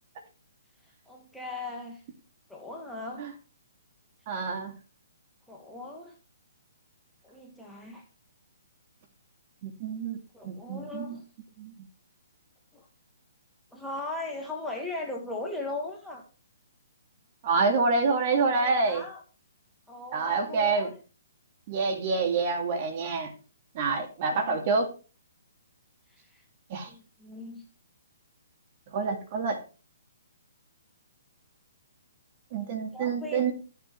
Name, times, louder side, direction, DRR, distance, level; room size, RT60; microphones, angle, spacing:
voice 1, 1.1-2.0 2.5-3.2 5.5-6.1 7.2-8.0 10.3-11.2 12.7-12.9 13.7-16.2 18.5-19.2 19.9-20.9 23.9-24.7 26.1-26.4 26.9-27.6 32.9-33.5, left 2 dB, ahead, 1.6 m, -38 dB
voice 2, 4.3-4.7 9.6-10.2 10.4-11.2 11.6-11.7 17.4-19.0 20.1-20.9 21.7-23.3 23.7-24.9 26.7-26.9 28.9-29.6 32.5-33.5, right 4 dB, 40° right, 2.3 m, -27 dB
13.5 x 7.3 x 3.2 m
figure-of-eight pair, 130°, 0 cm